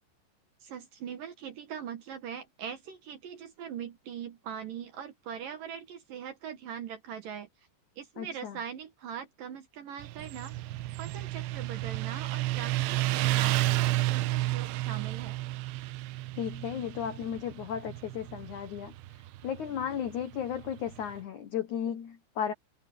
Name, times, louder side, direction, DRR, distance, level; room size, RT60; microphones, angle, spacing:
voice 1, 0.6-7.5 8.0-10.5 11.0-15.4, right 8 dB, 60° right, 2.5 m, -41 dB
voice 2, 8.2-8.6 16.4-18.9 19.4-22.5, left 9 dB, 85° left, 1.7 m, -34 dB
Motorcycle, 10.0-21.1, right 17 dB, 80° right, 2.6 m, -31 dB
omnidirectional pair, 5.5 m